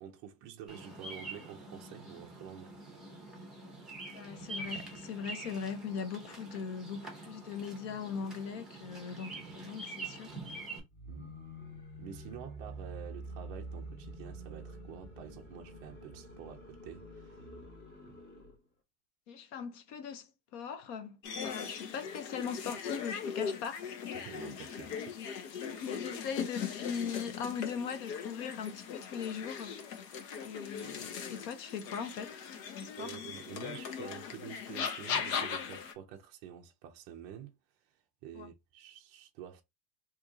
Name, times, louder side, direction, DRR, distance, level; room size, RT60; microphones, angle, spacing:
voice 1, 0.0-2.8 11.1-11.4 12.0-17.5 18.1-18.2 24.1-25.1 25.7-25.8 33.0-37.5 37.9-38.0 38.2-39.6, right 9 dB, 35° right, 0.5 m, -48 dB
Bird vocalization bird call bird song, 0.7-10.8, right 2 dB, ahead, 0.8 m, -46 dB
voice 2, 4.1-10.4 19.3-23.9 25.0-25.3 25.8-29.8 30.4-32.4 32.7-33.1 38.3-38.5, left 6 dB, 45° left, 0.6 m, -40 dB
sound 1, 10.9-18.6, right 1 dB, 20° left, 1.3 m, -47 dB
sound 2, 21.2-35.9, left 7 dB, 75° left, 1.1 m, -39 dB
2.8 x 2.7 x 3.5 m
supercardioid pair, 140°, 50 cm